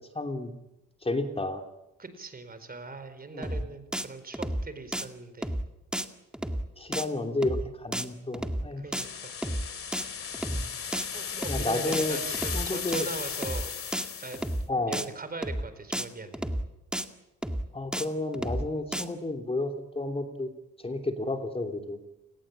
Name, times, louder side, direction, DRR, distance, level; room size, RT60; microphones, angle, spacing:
voice 1, 0.1-0.5 1.0-1.6 3.3-3.6 6.8-8.8 10.5-10.6 11.5-12.2 12.5-13.1 14.7-15.0 17.7-20.5 20.8-22.0, left 2 dB, 20° left, 4 dB, 3.1 m, -31 dB
voice 2, 2.0-5.5 8.8-9.7 10.5-10.6 11.1-13.7 14.2-14.4 14.7-16.4, right 3 dB, 30° right, 11 dB, 4.5 m, -40 dB
sound 1, 3.4-3.6 3.9-4.1 4.3-4.6 4.9-5.0 5.4-5.6 5.9-6.1 6.3-6.6 6.9-7.1 7.4-7.6 7.9-8.1 8.3-8.6 8.9-9.1 9.4-9.6 9.9-10.0 10.3-10.6 10.9-11.1 11.4-11.6 11.9-12.1 12.3-12.6 12.9-13.1 13.4-13.6 13.9-14.1 14.3-14.6 14.9-15.1 15.4-15.6 15.9-16.1 16.3-16.6 16.9-17.0 17.4-17.6 17.9-18.1 18.3-18.6 18.9-19.0, right 1 dB, 5° right, 2.0 m, -31 dB
sound 2, 8.9-14.6, left 7 dB, 45° left, 2.3 m, -36 dB
30.0 x 19.5 x 8.8 m, 0.93 s
cardioid pair, 90°, 30 cm